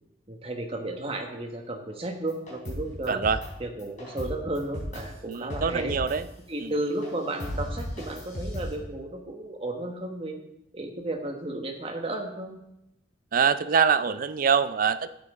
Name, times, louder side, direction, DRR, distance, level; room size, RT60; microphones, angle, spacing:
voice 1, 0.3-3.2 3.6-6.0 6.5-10.4 10.7-12.6, right 1 dB, 30° right, 3 dB, 1.3 m, -33 dB
sound 1, 2.3-3.5 3.8-5.0 5.3-6.2 7.0-7.1 7.4-8.7, left 1 dB, 45° left, 4.0 m, -36 dB
voice 2, 3.1-3.4 5.3-6.3 6.6-6.7 13.3-15.1, right 6 dB, 50° right, 13 dB, 0.4 m, -24 dB
11.5 x 8.4 x 3.7 m, 0.84 s
head